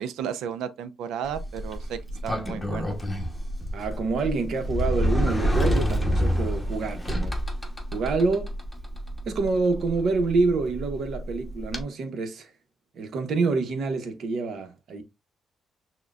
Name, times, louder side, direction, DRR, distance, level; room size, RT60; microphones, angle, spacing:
voice 1, 0.0-3.0, right 8 dB, 85° right, 0.4 m, -33 dB
Sliding door, 1.2-11.8, equal, 10° left, 0.9 m, -28 dB
voice 2, 3.7-7.4 7.9-8.6 9.3-12.5 12.9-15.0, right 3 dB, 65° right, 0.9 m, -27 dB
6.1 x 2.2 x 2.3 m
cardioid pair, 90°, 0 cm